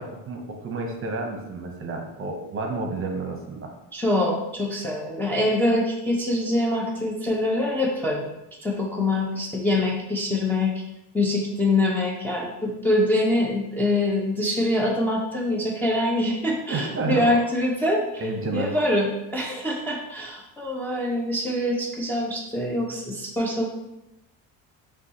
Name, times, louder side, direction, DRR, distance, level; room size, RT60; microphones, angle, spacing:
voice 1, 0.0-3.7 16.7-17.4 18.2-18.7, right 3 dB, 35° right, 2 dB, 0.8 m, -30 dB
voice 2, 3.9-8.3 8.6-10.7 11.1-18.0 18.5-23.7, left 1 dB, 5° left, -3 dB, 0.5 m, -24 dB
5.8 x 2.3 x 2.8 m, 0.93 s
cardioid pair, 115°, 38 cm